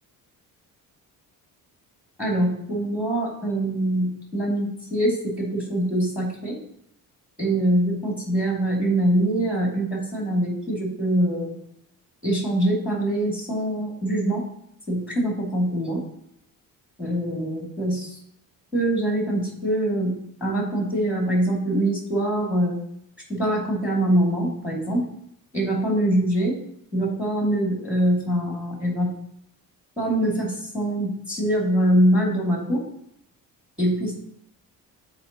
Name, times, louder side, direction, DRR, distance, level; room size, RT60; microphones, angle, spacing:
voice 1, 2.2-6.6 7.4-11.6 12.2-14.5 14.9-16.0 17.0-18.1 18.7-22.8 23.3-25.0 25.5-26.6 26.9-29.2 30.0-32.8 33.8-34.1, right 1 dB, 5° right, -2 dB, 2.2 m, -24 dB
9.4 x 4.4 x 2.8 m, 0.74 s
cardioid pair, 140°, 35 cm